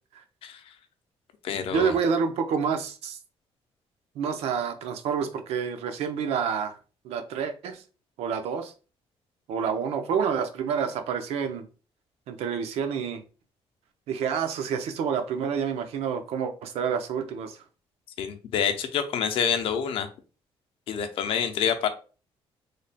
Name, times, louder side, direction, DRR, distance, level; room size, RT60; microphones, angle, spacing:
voice 1, 0.4-0.8 1.4-2.0 18.2-20.1 20.9-21.9, left 7 dB, 60° left, 0.5 m, -27 dB
voice 2, 1.7-3.2 4.2-6.8 7.0-7.8 8.2-8.7 9.5-11.7 12.3-13.2 14.1-17.6, right 6 dB, 80° right, 0.6 m, -28 dB
3.2 x 2.1 x 4.0 m
cardioid pair, 180°, 10 cm